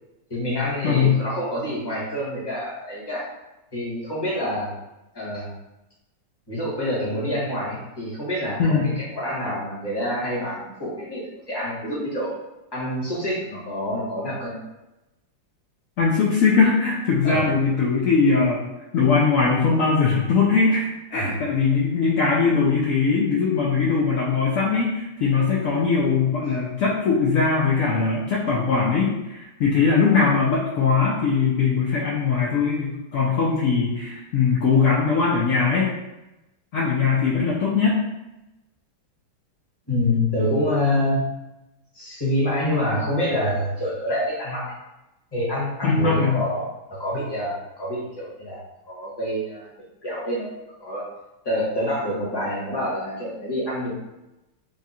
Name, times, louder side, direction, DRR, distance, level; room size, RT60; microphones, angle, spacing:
voice 1, 0.3-3.3 3.7-4.7 5.1-5.5 6.5-12.3 12.7-14.6 17.2-17.5 21.1-21.4 39.9-41.2 41.9-44.7 45.3-49.6 50.0-50.5 50.8-51.1 51.4-53.9, left 1 dB, 15° left, -7 dB, 1.0 m, -26 dB
voice 2, 0.8-1.2 8.6-9.0 16.0-18.6 18.9-35.9 36.7-38.0 45.8-46.4, left 5 dB, 75° left, -6 dB, 0.7 m, -20 dB
3.6 x 2.4 x 4.2 m, 0.95 s
omnidirectional pair, 2.2 m